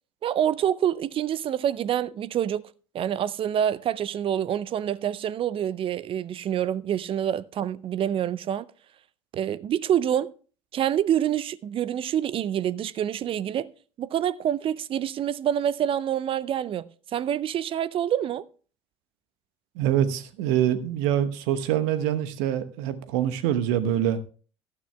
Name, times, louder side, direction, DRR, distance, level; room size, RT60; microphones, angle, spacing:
voice 1, 0.2-8.7 9.3-10.3 10.7-13.7 14.0-18.5, right 10 dB, 40° right, 0.5 m, -27 dB
voice 2, 19.8-24.2, right 10 dB, 65° right, 1.0 m, -25 dB
17.0 x 12.5 x 2.3 m
figure-of-eight pair, 60°, 15 cm